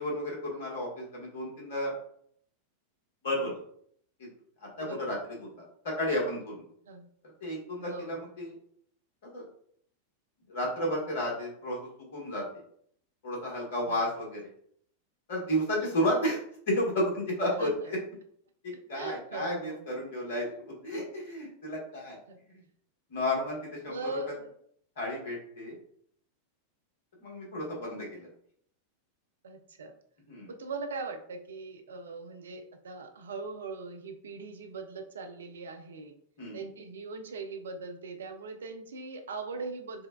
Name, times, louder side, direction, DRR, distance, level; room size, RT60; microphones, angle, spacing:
voice 1, 0.0-1.9 3.2-3.6 4.2-4.3 4.6-6.6 7.4-8.5 9.3-9.4 10.5-11.8 12.1-12.4 13.2-14.4 15.3-18.0 18.9-22.2 23.1-24.1 25.0-25.8 27.2-28.3 30.3-30.5 36.4-36.6, left 1 dB, 55° left, -2 dB, 1.3 m, -32 dB
voice 2, 4.8-5.2 6.9-7.1 7.8-8.3 13.9-14.0 17.6-17.7 18.9-19.9 22.3-22.4 23.8-24.5 29.4-29.9 30.5-36.1 36.5-40.1, right 3 dB, 65° right, 6 dB, 0.4 m, -40 dB
5.1 x 2.2 x 2.2 m, 0.65 s
figure-of-eight pair, 90°, 0 cm